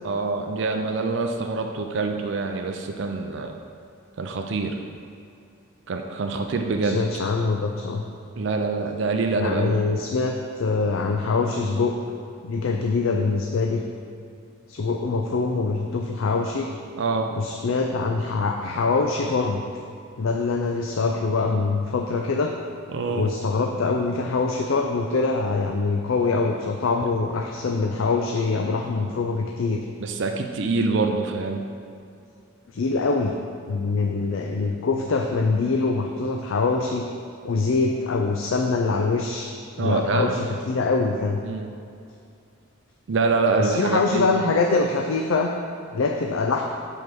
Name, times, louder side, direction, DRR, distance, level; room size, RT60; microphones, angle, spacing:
voice 1, 0.0-3.5 4.2-4.7 5.9-7.0 8.4-9.8 17.0-17.3 22.9-23.3 30.0-31.7 39.8-40.4 41.4-41.7 43.1-44.3, right 3 dB, 60° right, 4 dB, 0.4 m, -25 dB
voice 2, 6.8-8.0 9.4-11.9 12.4-13.8 14.7-16.7 17.3-19.6 20.2-22.5 23.1-29.8 32.7-33.3 33.7-37.0 37.4-39.5 39.8-41.4 43.6-45.5 45.9-46.6, left 4 dB, 75° left, 2 dB, 0.4 m, -24 dB
5.3 x 4.6 x 6.1 m, 2.5 s
head